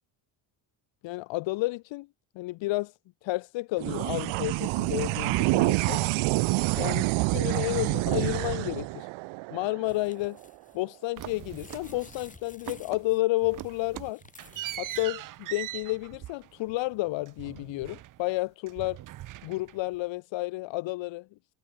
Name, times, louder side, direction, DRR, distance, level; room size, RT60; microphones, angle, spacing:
voice 1, 1.0-2.1 2.3-2.9 3.2-6.0 6.8-9.1 9.5-10.4 10.7-14.2 14.8-19.0 19.4-21.3, left 20 dB, 70° left, 1.3 m, -31 dB
sound 1, 3.8-10.5, right 24 dB, 85° right, 0.8 m, -27 dB
sound 2, 9.8-15.1 15.4-15.5, left 4 dB, 15° left, 6.4 m, -53 dB
sound 3, 11.2-12.4 12.7-13.1 13.4-18.4 18.7-20.0, right 14 dB, 45° right, 0.7 m, -41 dB
cardioid pair, 160°, 46 cm